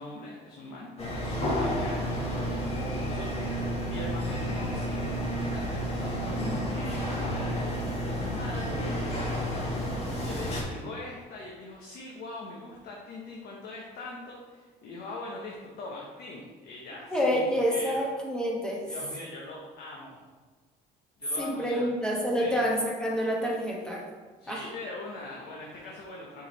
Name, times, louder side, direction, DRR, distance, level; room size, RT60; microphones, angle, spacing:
voice 1, 0.0-18.1 18.9-20.2 21.2-21.9 22.4-22.6 24.4-26.5, left 2 dB, 70° left, -2 dB, 1.1 m, -42 dB
sound 1, 1.0-10.6, equal, 35° left, 1.7 m, -31 dB
voice 2, 17.1-18.8 21.4-24.1 24.5-24.6, equal, 5° left, -2 dB, 1.2 m, -28 dB
6.7 x 4.9 x 3.2 m, 1.4 s
cardioid pair, 110°, 17 cm